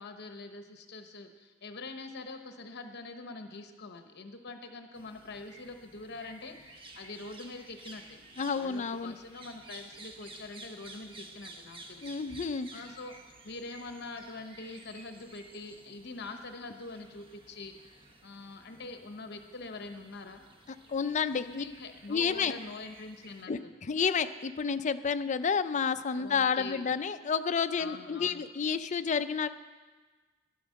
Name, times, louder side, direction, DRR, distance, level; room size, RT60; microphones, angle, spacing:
voice 1, 0.0-8.2 8.5-13.1 13.4-17.7 18.2-20.4 21.4-23.7 26.1-26.9 27.8-28.4, left 3 dB, 50° left, 6 dB, 0.9 m, -44 dB
sound 1, 4.9-23.5, right 2 dB, 25° right, 0.9 m, -53 dB
voice 2, 8.4-9.1 12.0-12.7 20.9-21.6 22.1-22.5 23.5-23.6 23.9-29.5, left 6 dB, 35° left, 11 dB, 0.4 m, -30 dB
12.0 x 11.0 x 6.4 m, 1.4 s
head